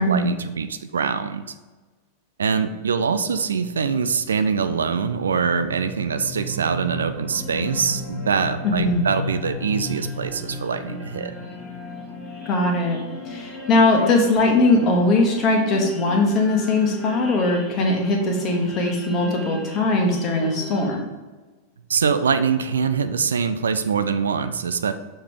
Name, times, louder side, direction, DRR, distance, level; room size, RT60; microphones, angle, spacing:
voice 1, 0.0-1.5 2.4-11.3 21.9-24.9, right 6 dB, 70° right, 10 dB, 0.4 m, -23 dB
sound 1, 4.2-21.0, left 1 dB, 10° left, 1.5 m, -35 dB
voice 2, 8.6-9.0 12.4-13.0 13.2-21.0, left 2 dB, 35° left, 1 dB, 1.4 m, -20 dB
6.5 x 3.3 x 5.3 m, 1.3 s
figure-of-eight pair, 90°, 0 cm